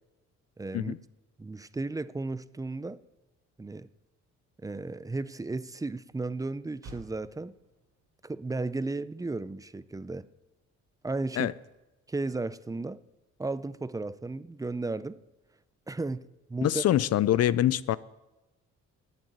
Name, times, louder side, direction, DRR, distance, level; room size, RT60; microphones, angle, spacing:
voice 1, 0.6-0.9 1.4-3.0 3.6-3.9 4.6-7.6 8.2-10.3 11.0-11.5 12.1-13.0 13.4-15.2 15.9-16.8, right 3 dB, 10° right, 0.5 m, -34 dB
Motor vehicle (road), 6.8-11.4, right 2 dB, 90° right, 4.1 m, -58 dB
voice 2, 16.6-18.0, left 12 dB, 55° left, 0.5 m, -24 dB
11.0 x 7.9 x 9.3 m
cardioid pair, 90°, 30 cm